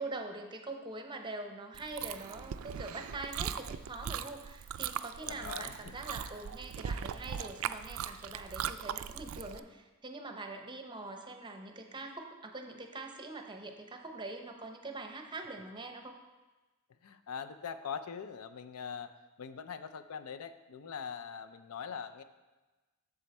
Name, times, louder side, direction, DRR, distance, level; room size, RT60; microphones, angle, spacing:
voice 1, 0.0-16.2, right 2 dB, 20° right, 4 dB, 0.7 m, -43 dB
Chewing mastication, 1.7-9.6, right 8 dB, 65° right, 0.3 m, -39 dB
voice 2, 5.3-5.7 17.0-19.1 19.4-22.2, left 6 dB, 85° left, 11 dB, 0.5 m, -42 dB
7.8 x 6.9 x 4.2 m, 1.2 s
head